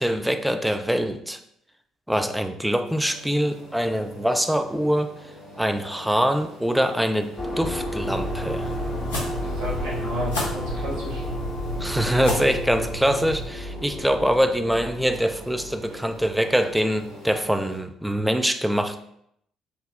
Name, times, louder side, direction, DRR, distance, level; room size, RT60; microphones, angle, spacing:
voice 1, 0.0-1.4 2.1-5.1 5.6-7.3 7.6-8.7 11.8-19.0, equal, 5° right, 7 dB, 0.3 m, -24 dB
sound 1, 2.8-17.8, equal, 85° right, 1.2 m, -44 dB
sound 2, 7.4-16.9, left 1 dB, 40° left, 0.7 m, -32 dB
sound 3, 8.0-13.5, equal, 80° left, 0.7 m, -33 dB
voice 2, 9.6-11.2 15.9-16.0, equal, 70° right, -5 dB, 0.8 m, -32 dB
5.8 x 2.0 x 2.3 m, 0.73 s
figure-of-eight pair, 50°, 0 cm